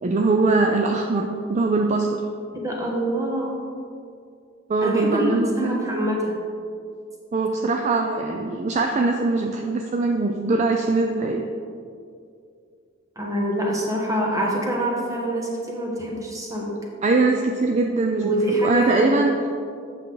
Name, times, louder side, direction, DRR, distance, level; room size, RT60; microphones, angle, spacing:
voice 1, 0.0-2.2 4.7-5.8 7.3-11.4 17.0-19.5, right 3 dB, 35° right, 3 dB, 0.4 m, -22 dB
voice 2, 2.5-3.6 4.8-6.4 13.2-16.8 18.2-19.2, right 1 dB, 15° right, -2 dB, 1.2 m, -25 dB
8.1 x 6.1 x 3.9 m, 2.3 s
head